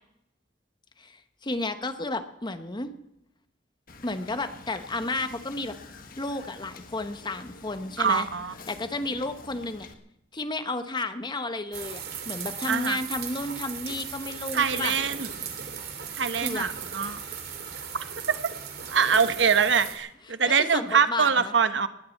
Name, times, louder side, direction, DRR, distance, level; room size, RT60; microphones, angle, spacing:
voice 1, 1.0-2.9 4.0-5.7 6.2-8.3 8.7-9.9 10.3-15.0 16.4-16.7 20.7-21.5, left 2 dB, 25° left, 9 dB, 1.1 m, -32 dB
Wind / Boat Water vehicle, 3.9-9.9, left 3 dB, 50° left, 1.5 m, -48 dB
voice 2, 8.0-8.5 12.7-13.0 14.5-15.3 16.2-17.2 18.3-18.4 18.9-21.9, right 6 dB, 75° right, 11 dB, 1.0 m, -24 dB
sound 1, 11.7-20.0, right 7 dB, 60° right, 2.7 m, -37 dB
19.5 x 8.4 x 8.5 m, 0.84 s
head